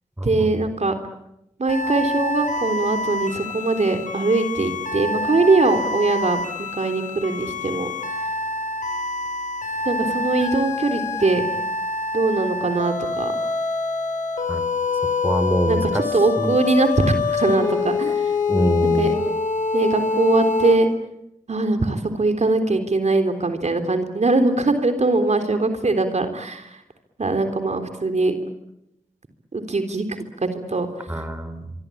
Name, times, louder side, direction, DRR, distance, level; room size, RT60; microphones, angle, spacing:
voice 1, 0.2-1.0 1.6-6.4 6.7-7.9 9.9-11.5 12.1-13.4 15.7-18.3 18.8-19.1 19.7-20.9 21.5-26.8 27.2-28.3 29.5-31.1, right 3 dB, 55° right, 7 dB, 3.6 m, -21 dB
sound 1, 1.7-20.7, left 3 dB, 65° left, 6.7 m, -26 dB
voice 2, 15.2-16.6 18.5-19.2 31.1-31.7, right 1 dB, 15° right, 11 dB, 3.6 m, -25 dB
25.0 x 24.5 x 8.6 m, 0.83 s
cardioid pair, 40°, 14 cm